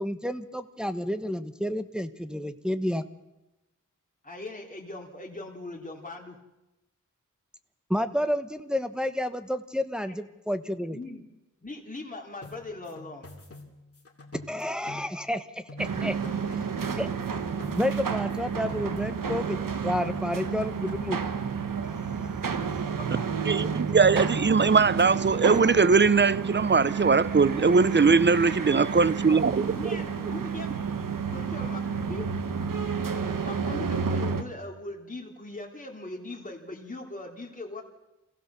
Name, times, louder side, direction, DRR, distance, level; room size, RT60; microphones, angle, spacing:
voice 1, 0.0-3.0 7.9-11.0 14.5-16.2 17.0-17.1 17.8-21.2 21.9-22.0 22.6-22.7, left 1 dB, 5° right, 1.3 m, -30 dB
voice 2, 4.2-6.4 10.0-10.2 10.9-11.2 11.6-13.3 16.0-16.3 23.0-23.2 28.5-29.4 29.7-30.7 31.3-31.8 32.1-32.3 33.4-37.8, left 2 dB, 25° left, 3.3 m, -40 dB
sound 1, 12.4-15.4 15.7-18.4 18.7-19.8 20.0-21.1, left 2 dB, 45° left, 3.0 m, -47 dB
sound 2, 15.8-34.4, right 6 dB, 85° right, 1.5 m, -30 dB
voice 3, 23.5-29.7, right 4 dB, 35° right, 0.7 m, -21 dB
25.5 x 16.5 x 7.0 m
wide cardioid pair, 60°, 32 cm